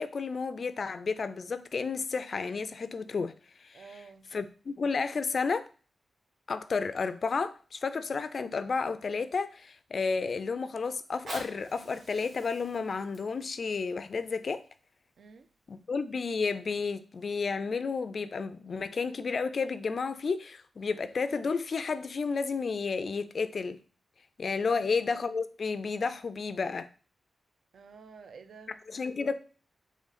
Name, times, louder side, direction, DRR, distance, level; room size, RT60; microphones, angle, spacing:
voice 1, 0.0-3.3 3.6-3.8 4.3-5.7 6.5-14.6 15.7-23.8 24.4-26.9 28.9-29.4, left 4 dB, 45° left, 0.3 m, -32 dB
voice 2, 3.7-4.3 15.2-15.5 24.7-25.0 27.7-28.8, right 5 dB, 75° right, 0.4 m, -50 dB
Fire, 11.0-16.0 16.6-16.7, right 1 dB, 55° right, 1.5 m, -48 dB
3.8 x 3.1 x 4.0 m
wide cardioid pair, 180°, 0 cm